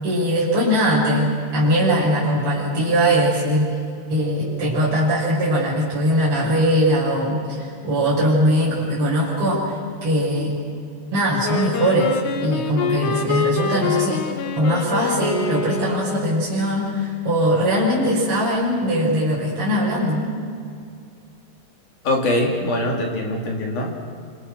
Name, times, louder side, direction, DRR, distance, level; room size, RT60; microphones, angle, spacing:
voice 1, 0.0-3.8 4.1-10.6 11.1-14.2 14.6-20.2, equal, 30° right, -8 dB, 7.0 m, -20 dB
Wind instrument woodwind instrument, 11.4-16.4, left 6 dB, 70° left, 3.6 m, -26 dB
voice 2, 22.0-24.0, left 1 dB, 45° left, 1 dB, 4.3 m, -22 dB
27.0 x 27.0 x 6.4 m, 2.3 s
omnidirectional pair, 5.5 m